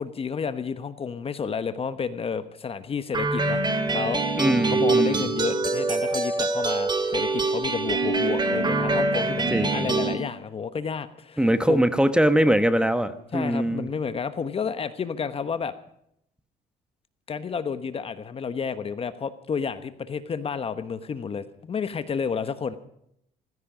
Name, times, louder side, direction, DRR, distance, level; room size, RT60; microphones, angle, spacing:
voice 1, 0.0-3.6 3.9-4.4 4.7-11.8 13.3-15.8 17.3-22.8, left 6 dB, 35° left, 12 dB, 1.1 m, -31 dB
sound 1, 3.1-10.1, right 3 dB, 25° right, 2.5 m, -24 dB
voice 2, 4.4-5.3 9.5-9.9 11.4-13.9, right 1 dB, 5° right, 10 dB, 1.2 m, -22 dB
16.5 x 16.0 x 5.0 m, 0.73 s
cardioid pair, 110°, 17 cm